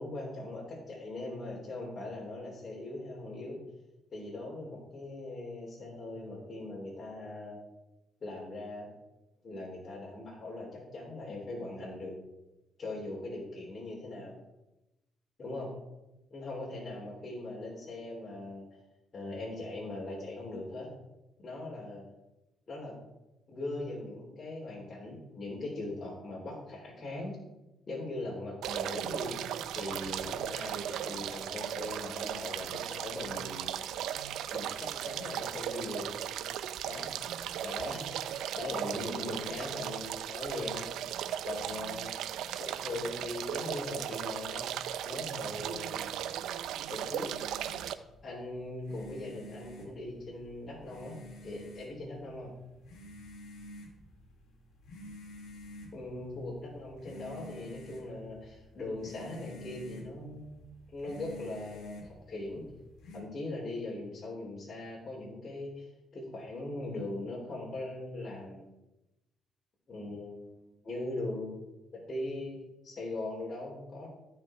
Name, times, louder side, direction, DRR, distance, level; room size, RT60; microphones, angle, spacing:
voice 1, 0.0-3.6 4.1-7.6 8.2-8.9 9.4-12.2 12.8-14.3 15.4-15.7 16.3-18.7 19.1-20.9 21.4-22.0 22.7-23.0 23.5-27.4 27.9-29.4 29.7-33.7 34.5-36.1 36.9-37.1 37.6-41.1 41.4-44.7 45.0-46.1 46.9-47.3 48.2-51.2 51.4-52.5 55.9-60.6 60.9-62.6 63.1-65.8 66.1-68.6 69.9-71.6 71.9-74.1, left 2 dB, 40° left, -4 dB, 3.4 m, -40 dB
sound 1, 28.6-47.9, right 10 dB, 85° right, 0.5 m, -37 dB
sound 2, 47.2-63.2, left 1 dB, 70° left, 2.4 m, -51 dB
14.0 x 5.8 x 4.4 m, 0.97 s
cardioid pair, 90°, 0 cm